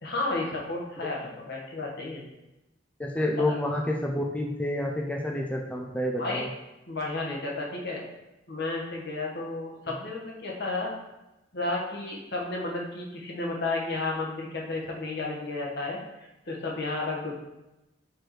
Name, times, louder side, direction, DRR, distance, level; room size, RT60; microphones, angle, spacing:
voice 1, 0.0-2.2 3.5-3.6 6.2-6.4 6.9-8.0 8.5-10.9 11.5-16.0 16.5-17.3, left 2 dB, 60° left, -2 dB, 1.5 m, -32 dB
voice 2, 3.0-6.5, left 1 dB, 10° left, 0 dB, 0.5 m, -29 dB
4.7 x 4.6 x 4.8 m, 0.96 s
head